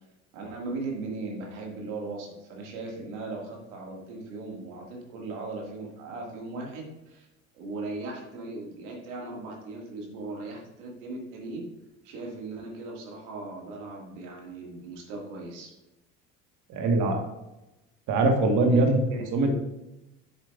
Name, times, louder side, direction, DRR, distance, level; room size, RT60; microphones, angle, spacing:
voice 1, 0.3-7.3 7.5-11.7 12.0-15.7 18.7-18.8 19.1-19.5, right 3 dB, 80° right, 0 dB, 1.9 m, -38 dB
voice 2, 16.7-17.2 18.1-19.0 19.3-19.5, right 2 dB, 60° right, 4 dB, 1.4 m, -22 dB
7.2 x 7.2 x 2.4 m, 0.95 s
supercardioid pair, 80°, 34 cm